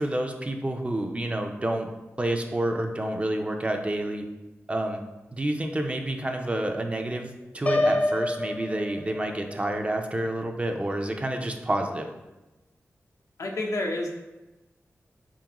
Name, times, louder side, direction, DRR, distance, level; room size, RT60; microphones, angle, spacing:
voice 1, 0.0-1.9 2.2-4.3 4.7-5.0 5.3-12.1, right 1 dB, 25° right, 3 dB, 0.5 m, -29 dB
Piano, 7.7-9.6, left 2 dB, 25° left, 0.4 m, -27 dB
voice 2, 13.4-14.1, left 2 dB, 85° left, 0 dB, 0.7 m, -29 dB
4.6 x 3.7 x 2.9 m, 1.0 s
wide cardioid pair, 70°, 5 cm